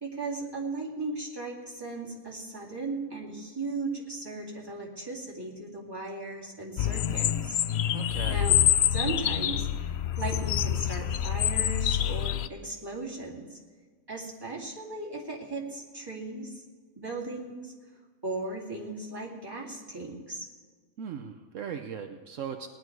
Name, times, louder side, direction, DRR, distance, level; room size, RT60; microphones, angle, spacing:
voice 1, 0.0-7.5 8.3-8.6 8.9-13.6 14.1-16.6 17.0-17.7 18.2-20.5, right 2 dB, 15° right, -3 dB, 2.4 m, -37 dB
sound 1, 6.8-12.5, left 10 dB, 65° left, 0.7 m, -26 dB
voice 2, 7.9-8.4 21.0-22.7, right 7 dB, 70° right, 6 dB, 1.1 m, -38 dB
18.5 x 10.5 x 4.7 m, 1.5 s
omnidirectional pair, 1.4 m